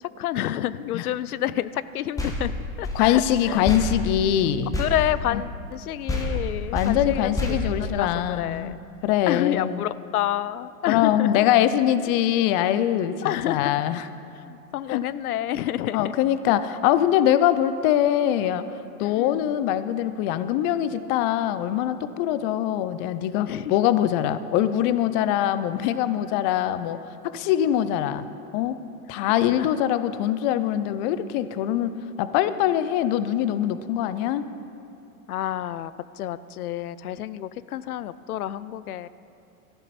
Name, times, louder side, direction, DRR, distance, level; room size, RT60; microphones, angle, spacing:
voice 1, 0.0-3.7 4.8-8.8 9.3-11.5 13.2-13.7 14.3-16.1 19.0-19.5 23.5-23.7 29.2-29.7 35.3-39.1, left 12 dB, 80° left, 17 dB, 0.6 m, -29 dB
sound 1, 2.2-5.8 6.1-8.6, left 2 dB, 10° left, 1.4 m, -29 dB
voice 2, 2.9-4.7 5.3-5.4 6.7-9.8 10.9-14.1 14.9-15.0 15.9-18.6 19.0-27.0 27.2-28.3 28.5-28.8 29.1-31.9 32.2-34.5, left 11 dB, 30° left, 13 dB, 0.4 m, -23 dB
13.5 x 11.0 x 4.2 m, 2.7 s
hypercardioid pair, 115°, 43 cm